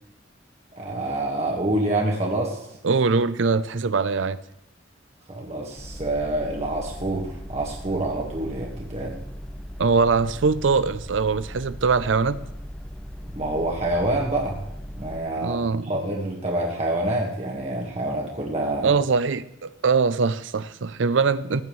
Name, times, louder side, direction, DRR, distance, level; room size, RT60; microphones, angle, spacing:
voice 1, 0.8-2.7 5.3-9.1 13.3-14.6 15.0-15.6 15.8-18.9, right 1 dB, 35° right, -2 dB, 1.7 m, -27 dB
voice 2, 2.8-4.4 9.8-12.4 15.4-15.9 18.8-21.6, right 4 dB, 75° right, 16 dB, 0.6 m, -22 dB
sound 1, 5.8-15.2, equal, 5° left, 0.7 m, -38 dB
15.5 x 9.6 x 3.2 m, 0.86 s
head